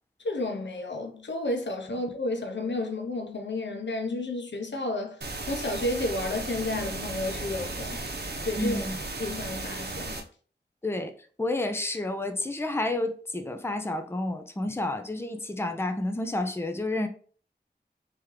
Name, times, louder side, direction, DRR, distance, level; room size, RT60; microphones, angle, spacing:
voice 1, 0.2-5.2 5.5-8.0 8.4-8.9 9.2-10.2, left 2 dB, 85° left, 0.6 m, -31 dB
independent pink noise quant, 5.2-10.2, right 2 dB, 65° right, 0.8 m, -35 dB
voice 2, 8.6-9.0 10.8-11.1 11.4-17.1, left 2 dB, 15° left, 0.5 m, -30 dB
3.6 x 3.1 x 3.1 m
wide cardioid pair, 60°, 18 cm